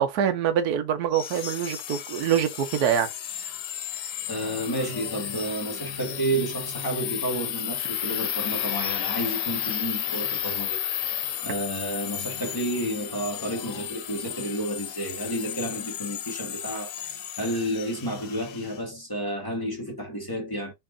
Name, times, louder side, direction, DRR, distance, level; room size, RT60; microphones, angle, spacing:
voice 1, 0.0-3.1, right 9 dB, 70° right, 1.3 m, -24 dB
sound 1, 1.1-18.8, left 10 dB, 90° left, 1.3 m, -33 dB
voice 2, 3.9-20.7, right 1 dB, 15° left, 1.0 m, -31 dB
4.0 x 2.6 x 3.4 m
omnidirectional pair, 1.8 m